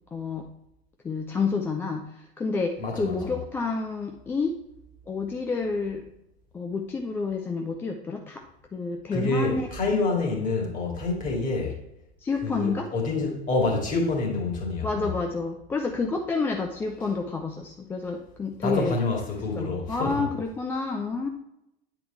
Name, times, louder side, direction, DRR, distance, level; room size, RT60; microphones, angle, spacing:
voice 1, 0.1-0.5 1.0-4.6 5.1-6.0 6.5-8.4 8.7-10.0 12.2-12.9 14.8-19.0 19.5-21.3, left 4 dB, 5° left, 3 dB, 0.3 m, -29 dB
voice 2, 2.8-3.4 9.1-11.8 12.4-15.2 18.6-20.3, left 3 dB, 25° left, 0 dB, 2.3 m, -27 dB
9.4 x 4.8 x 3.3 m, 0.83 s
figure-of-eight pair, 85°, 32 cm